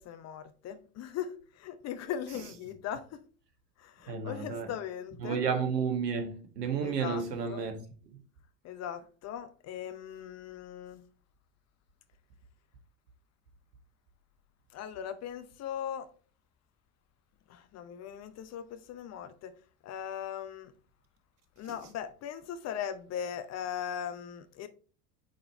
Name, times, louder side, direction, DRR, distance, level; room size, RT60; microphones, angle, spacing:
voice 1, 0.0-3.2 3.8-5.4 6.8-7.2 7.5-7.6 8.6-11.0 14.7-16.1 17.5-19.5 19.8-20.7 21.6-24.7, left 9 dB, 35° left, 0.7 m, -39 dB
voice 2, 4.1-4.7 5.2-7.8, right 6 dB, 75° right, 1.5 m, -31 dB
8.3 x 4.5 x 3.2 m
figure-of-eight pair, 80°, 48 cm